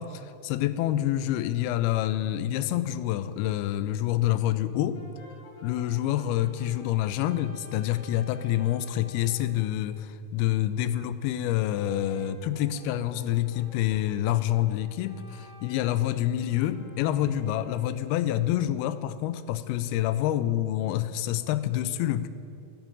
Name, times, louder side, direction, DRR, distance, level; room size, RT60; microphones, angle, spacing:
voice 1, 0.0-5.0 5.6-22.3, left 13 dB, 85° left, 14 dB, 2.5 m, -27 dB
Brass instrument, 4.9-9.5 11.9-18.2, equal, 55° left, 3.1 m, -51 dB
11.0 x 9.1 x 8.8 m, 2.5 s
omnidirectional pair, 4.5 m